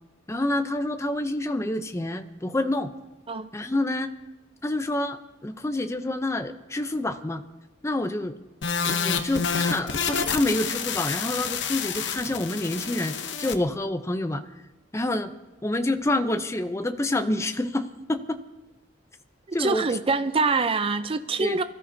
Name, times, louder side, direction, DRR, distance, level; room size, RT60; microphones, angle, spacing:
voice 1, 0.3-2.9 3.5-4.1 4.6-7.4 7.8-8.4 8.8-14.4 14.9-15.3 15.6-18.4 19.5-20.0 21.4-21.6, left 1 dB, 15° left, 0.6 m, -27 dB
sound 1, 8.6-13.6, left 6 dB, 70° left, 0.8 m, -28 dB
voice 2, 19.5-21.6, right 4 dB, 30° right, 0.5 m, -25 dB
23.0 x 13.5 x 2.7 m
head